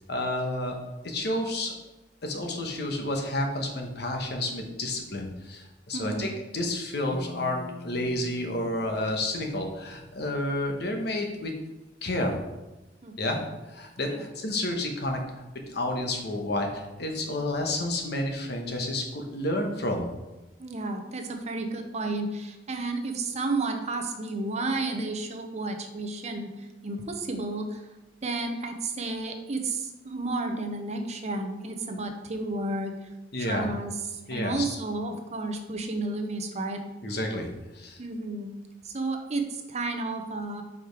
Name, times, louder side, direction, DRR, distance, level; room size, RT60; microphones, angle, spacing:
voice 1, 0.1-0.8 1.0-1.7 2.2-11.5 12.0-12.4 13.2-13.4 13.7-15.2 15.7-20.1 33.3-33.7 34.3-34.8 37.0-37.5 37.7-38.0, left 1 dB, 65° left, 2 dB, 1.1 m, -30 dB
voice 2, 5.9-6.3 13.0-13.4 14.1-14.2 20.6-27.9 28.2-32.9 33.4-36.8 38.0-38.5 38.8-40.6, right 2 dB, 40° right, 4 dB, 0.7 m, -32 dB
sound 1, 7.1-10.4, left 2 dB, 20° left, 1.4 m, -45 dB
5.1 x 5.0 x 4.6 m, 1.0 s
head